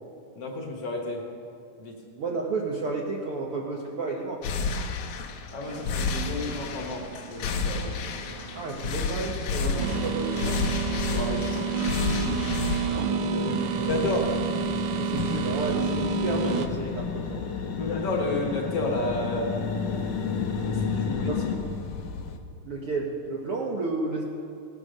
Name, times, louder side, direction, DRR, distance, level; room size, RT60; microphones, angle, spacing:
voice 1, 0.4-1.2 1.8-2.0 5.5-8.0 11.0-11.7 13.9-14.3 17.8-19.6 20.6-21.3, left 2 dB, 55° left, 1 dB, 2.0 m, -31 dB
voice 2, 2.2-4.4 8.5-10.7 12.9-14.0 14.3-14.4 15.0-17.4 21.1-21.5 22.6-24.2, right 3 dB, 65° right, -2 dB, 1.4 m, -32 dB
sound 1, 4.4-22.4, left 4 dB, 75° left, 2.1 m, -33 dB
sound 2, 5.6-16.7, right 5 dB, 80° right, 2.3 m, -30 dB
sound 3, 8.3-8.4 8.7-21.6, left 6 dB, 90° left, 0.9 m, -34 dB
18.0 x 8.2 x 6.4 m, 2.6 s
omnidirectional pair, 3.7 m